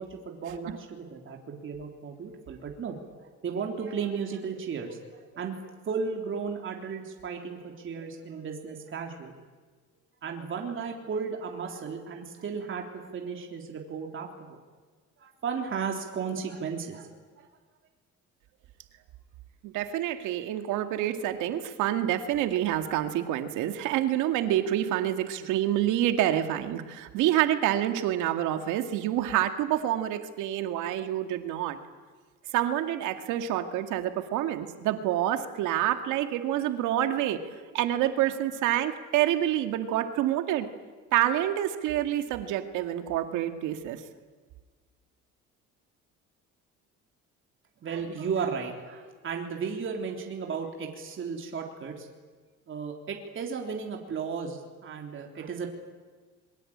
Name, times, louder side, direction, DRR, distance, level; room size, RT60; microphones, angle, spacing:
voice 1, 0.0-9.3 10.2-14.6 15.2-17.1 17.4-17.5 47.8-52.1 52.7-55.7, right 6 dB, 45° right, 2 dB, 3.6 m, -35 dB
voice 2, 19.6-31.8 32.5-37.4 37.7-40.7 41.1-44.0, right 12 dB, 90° right, 7 dB, 2.3 m, -27 dB
26.5 x 23.0 x 8.8 m, 1.4 s
cardioid pair, 120°, 29 cm